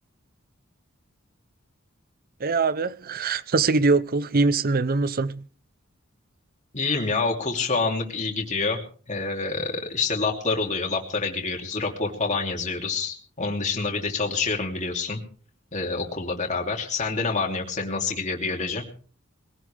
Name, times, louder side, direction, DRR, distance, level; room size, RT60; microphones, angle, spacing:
voice 1, 2.4-5.5, right 3 dB, 45° right, 0.7 m, -23 dB
voice 2, 6.7-8.8 9.1-15.2 15.7-18.8, left 4 dB, 35° left, 3.0 m, -27 dB
22.0 x 17.0 x 3.4 m
head